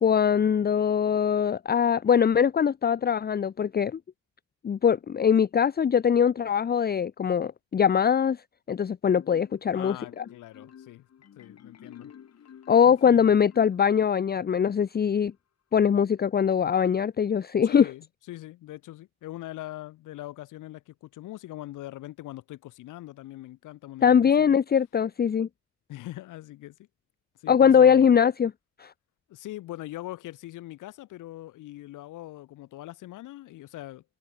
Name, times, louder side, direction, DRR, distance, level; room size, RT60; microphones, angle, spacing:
voice 1, 0.0-4.0 4.6-8.4 8.7-10.2 12.7-15.3 15.7-17.9 24.0-25.5 27.5-28.5 28.8-28.9, left 7 dB, 30° left, 0.7 m, -22 dB
Marimba xylophone, 9.1-14.3, left 8 dB, 55° left, 6.8 m, -50 dB
voice 2, 9.7-11.1 11.4-12.1 12.9-13.3 17.6-24.5 25.9-26.9 27.4-28.1 29.3-34.0, left 16 dB, 90° left, 7.6 m, -42 dB
cardioid pair, 90°, 30 cm